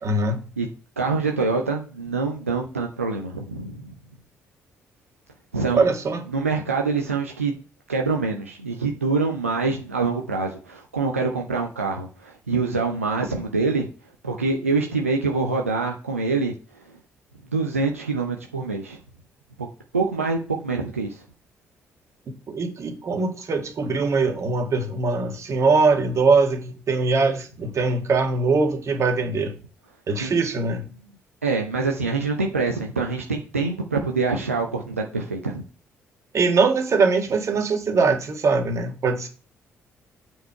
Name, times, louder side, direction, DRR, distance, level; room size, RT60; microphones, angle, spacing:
voice 1, 0.0-0.4 5.7-6.3 22.5-29.5 30.1-30.8 36.3-39.3, right 4 dB, 45° right, 1.8 m, -22 dB
voice 2, 1.0-3.9 5.5-5.8 6.3-7.5 7.9-13.9 14.2-16.8 17.5-19.0 19.6-19.7 19.9-21.2 30.2-30.3 31.4-35.6, right 4 dB, 85° right, 0.7 m, -25 dB
7.9 x 4.7 x 4.6 m
figure-of-eight pair, 45°, 7 cm